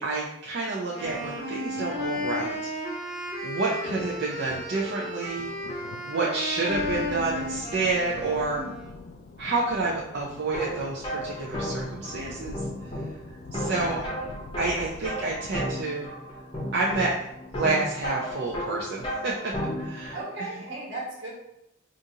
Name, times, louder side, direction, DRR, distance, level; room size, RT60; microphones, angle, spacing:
voice 1, 0.0-8.6 9.4-12.9 13.5-14.0 14.6-16.1 16.7-17.1 17.6-19.5 19.8-20.2, right 3 dB, 55° right, -4 dB, 0.5 m, -29 dB
Wind instrument woodwind instrument, 0.9-9.0, left 1 dB, 5° right, 1.0 m, -34 dB
sound 1, 1.0-15.5, left 3 dB, 55° left, 0.3 m, -44 dB
sound 2, 10.4-20.2, equal, 25° left, 0.7 m, -34 dB
voice 2, 13.7-14.3 20.1-21.3, right 2 dB, 75° right, -4 dB, 1.5 m, -36 dB
5.0 x 2.5 x 2.7 m, 0.84 s
head